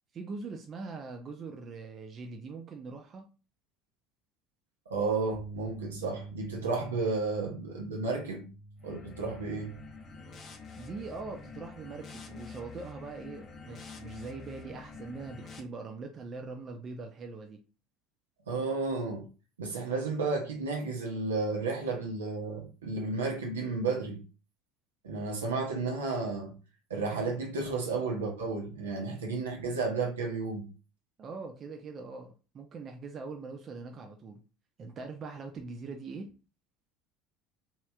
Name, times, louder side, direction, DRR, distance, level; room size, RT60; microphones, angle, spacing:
voice 1, 0.1-3.2 10.7-17.6 31.2-34.4 34.8-36.3, right 4 dB, 35° right, 0.4 m, -42 dB
voice 2, 4.9-8.4 8.8-9.7 18.5-19.3 19.6-24.2 25.0-26.5 26.9-30.7, right 3 dB, 75° right, 0.8 m, -32 dB
sound 1, 5.3-11.6, right 1 dB, 20° right, 0.9 m, -48 dB
sound 2, 8.8-15.6, left 5 dB, 35° left, 0.6 m, -47 dB
3.1 x 2.8 x 2.3 m
figure-of-eight pair, 65°, 0 cm